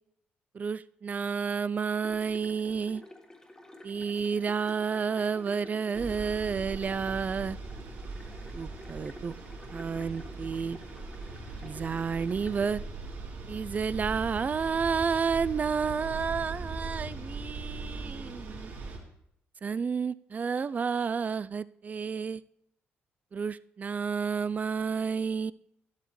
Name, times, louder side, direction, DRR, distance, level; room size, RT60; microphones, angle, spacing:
voice 1, 0.5-3.0 3.8-7.6 8.5-9.3 9.7-10.8 11.6-12.8 13.5-18.7 19.6-22.4 23.3-25.5, right 6 dB, 35° right, 17 dB, 0.4 m, -31 dB
sound 1, 1.9-12.8, left 1 dB, 15° left, 1.6 m, -50 dB
sound 2, 5.9-19.0, right 3 dB, 70° right, 3.3 m, -40 dB
12.5 x 11.0 x 3.2 m, 0.72 s
cardioid pair, 75°, 4 cm